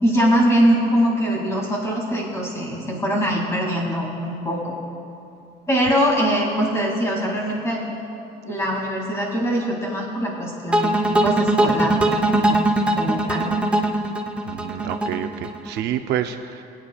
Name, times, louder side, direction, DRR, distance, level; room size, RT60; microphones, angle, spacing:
voice 1, 0.0-4.7 5.7-7.8 8.4-11.0 11.2-12.0 12.3-12.7 12.9-13.5, equal, 15° left, -2 dB, 2.2 m, -22 dB
sound 1, 10.7-15.8, right 1 dB, 5° right, 0.5 m, -20 dB
voice 2, 14.4-16.6, right 10 dB, 70° right, 8 dB, 0.5 m, -28 dB
23.0 x 8.7 x 2.3 m, 2.7 s
cardioid pair, 170°, 18 cm